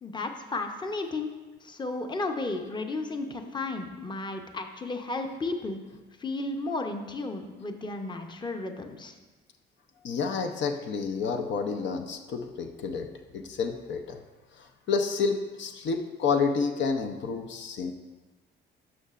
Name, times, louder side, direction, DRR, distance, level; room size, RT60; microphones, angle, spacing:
voice 1, 0.0-1.3 1.6-5.8 6.2-9.2, left 2 dB, 20° left, 5 dB, 0.7 m, -33 dB
voice 2, 10.0-14.2 14.6-17.9, left 5 dB, 65° left, 4 dB, 0.6 m, -30 dB
12.0 x 5.6 x 2.5 m, 1.2 s
cardioid pair, 90°, 20 cm